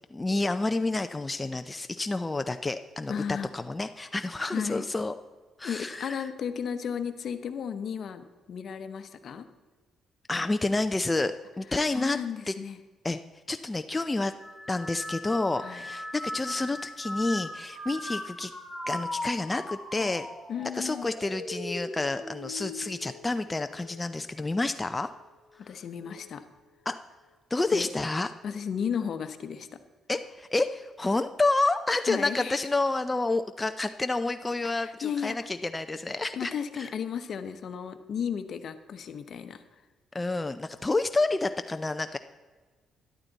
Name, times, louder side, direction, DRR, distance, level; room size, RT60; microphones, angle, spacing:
voice 1, 0.1-5.1 5.6-6.3 10.3-12.2 12.5-12.6 13.0-13.2 13.5-14.3 14.7-18.5 18.9-20.3 20.6-25.1 25.6-25.7 26.9-27.0 27.5-28.3 30.1-36.5 36.8-36.9 40.1-42.2, left 2 dB, 20° left, 8 dB, 0.5 m, -29 dB
voice 2, 3.1-3.5 4.5-4.8 5.6-9.4 11.8-12.8 15.6-15.8 20.5-21.1 25.7-26.4 27.7-27.9 28.4-29.7 32.1-32.6 34.8-35.5 36.4-39.6, left 7 dB, 60° left, 10 dB, 0.9 m, -34 dB
sound 1, 14.4-24.0 24.4-25.0 26.0-26.4, left 1 dB, ahead, 2.3 m, -39 dB
12.5 x 11.5 x 4.0 m, 1.4 s
cardioid pair, 90°, 0 cm